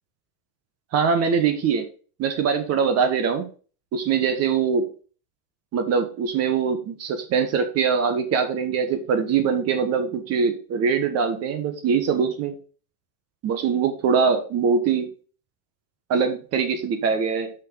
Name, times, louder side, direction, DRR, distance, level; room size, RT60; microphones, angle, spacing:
voice 1, 0.9-1.8 2.2-3.5 3.9-4.8 5.7-12.5 13.4-15.1 16.1-17.5, right 6 dB, 35° right, 8 dB, 1.3 m, -22 dB
6.2 x 5.6 x 5.0 m, 0.38 s
supercardioid pair, 155°, 46 cm